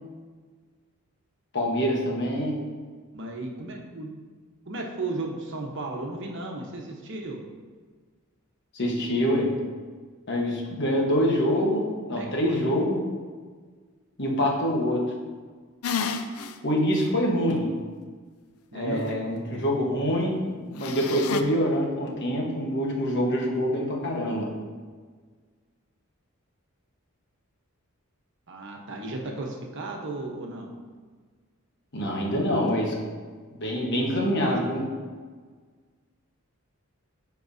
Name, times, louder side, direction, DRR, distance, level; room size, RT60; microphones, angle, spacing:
voice 1, 1.5-2.6 8.7-9.6 10.3-13.1 14.2-15.1 16.6-17.8 18.7-24.5 31.9-33.0 33.6-34.9, equal, 55° left, -1 dB, 1.3 m, -25 dB
voice 2, 3.1-4.1 4.7-7.4 12.1-12.6 18.7-19.2 28.5-30.7 34.2-34.6, right 2 dB, 55° right, 0 dB, 1.1 m, -34 dB
sound 1, 15.8-16.5 17.0-17.1 20.8-21.4, left 6 dB, 85° left, 0.5 m, -30 dB
13.0 x 4.7 x 2.7 m, 1.5 s
head